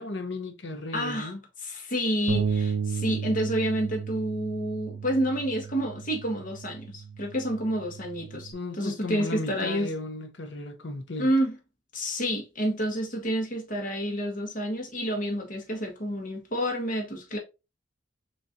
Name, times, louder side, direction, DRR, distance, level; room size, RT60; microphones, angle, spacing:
voice 1, 0.0-1.4 8.5-11.3, left 2 dB, 65° left, 0.9 m, -35 dB
voice 2, 0.9-1.3 1.6-9.9 11.2-11.5 11.9-17.4, equal, 45° left, 1.5 m, -29 dB
Bass guitar, 2.3-8.5, right 6 dB, 65° right, 0.6 m, -33 dB
6.4 x 3.1 x 2.6 m
head